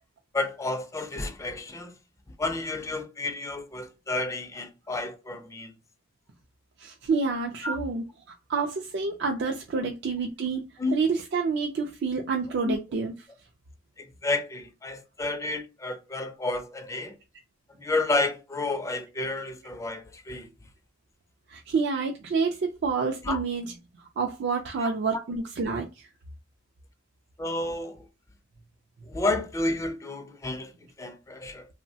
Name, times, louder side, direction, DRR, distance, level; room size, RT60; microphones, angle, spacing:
voice 1, 0.3-1.9 2.4-5.7 7.6-7.8 10.8-10.9 12.6-12.8 14.2-17.1 17.8-20.5 23.2-23.4 27.4-28.0 29.1-30.7 31.0-31.7, left 2 dB, 15° left, 0.3 m, -30 dB
voice 2, 6.8-8.1 8.5-10.7 10.9-13.1 21.5-23.7 24.2-26.1, right 4 dB, 60° right, 0.4 m, -28 dB
2.9 x 2.0 x 2.7 m
head